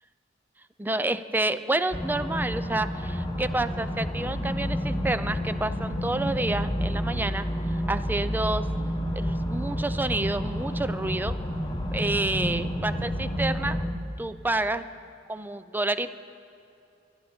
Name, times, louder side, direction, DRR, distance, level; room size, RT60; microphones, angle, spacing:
voice 1, 0.8-7.5 7.9-8.7 9.1-11.4 11.9-13.8 14.2-14.9 15.3-16.1, right 2 dB, 10° right, 12 dB, 0.4 m, -29 dB
sound 1, 1.9-13.9, equal, 25° left, 1.1 m, -30 dB
23.0 x 11.5 x 4.3 m, 2.6 s
head